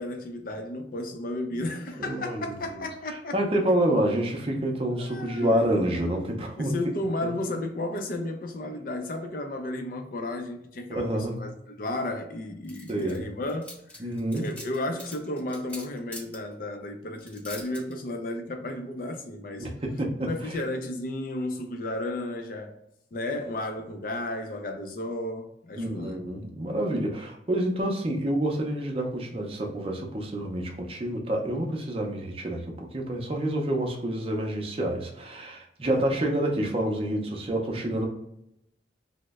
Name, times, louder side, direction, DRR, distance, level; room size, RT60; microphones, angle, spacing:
voice 1, 0.0-3.4 4.9-5.9 6.6-19.7 20.2-22.8 23.1-26.2 35.9-36.0, left 1 dB, 50° left, 0.5 m, -33 dB
voice 2, 2.0-2.9 3.3-6.8 10.9-11.3 12.9-13.2 14.0-14.5 19.6-20.6 25.8-38.1, right 1 dB, 30° right, 0.6 m, -28 dB
sound 1, 12.7-13.2 13.5-16.4 17.2-17.9, left 1 dB, 10° left, 0.7 m, -42 dB
3.1 x 2.1 x 3.4 m
head